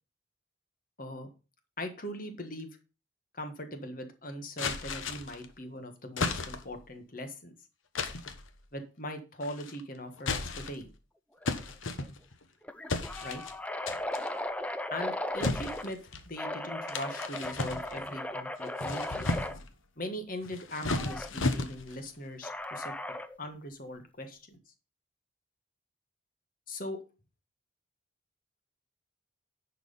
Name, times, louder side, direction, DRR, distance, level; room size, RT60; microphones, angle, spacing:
voice 1, 1.0-1.3 1.8-2.8 3.3-7.5 8.7-10.9 13.2-13.4 14.9-16.0 16.3-19.3 20.0-22.9 23.4-24.6 26.7-27.0, left 1 dB, 45° left, 7 dB, 1.5 m, -40 dB
sound 1, 4.6-5.5 6.2-6.8 8.0-8.5 9.4-9.8 10.2-10.9 11.5-12.4 12.9-13.5 13.9-14.3 15.4-16.3 16.9-18.1 18.6-19.7 20.4-22.0, left 3 dB, 90° left, 1.1 m, -34 dB
sound 2, 11.4-11.7 12.0-12.1 12.6-15.9 16.4-19.6 20.9-21.3 22.4-23.4, left 1 dB, 5° left, 0.4 m, -37 dB
10.5 x 4.8 x 5.4 m, 0.32 s
head